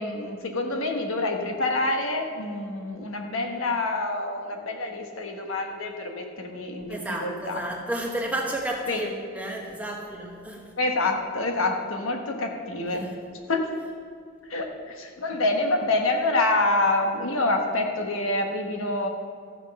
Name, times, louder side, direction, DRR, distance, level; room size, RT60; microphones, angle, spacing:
voice 1, 0.0-6.9 7.2-7.6 8.9-9.0 10.8-13.1 13.5-13.6 14.5-19.1, left 2 dB, 70° left, 3 dB, 1.2 m, -27 dB
voice 2, 6.9-10.7 12.9-13.1, right 1 dB, 5° right, 0 dB, 1.0 m, -32 dB
14.0 x 6.4 x 5.3 m, 2.3 s
head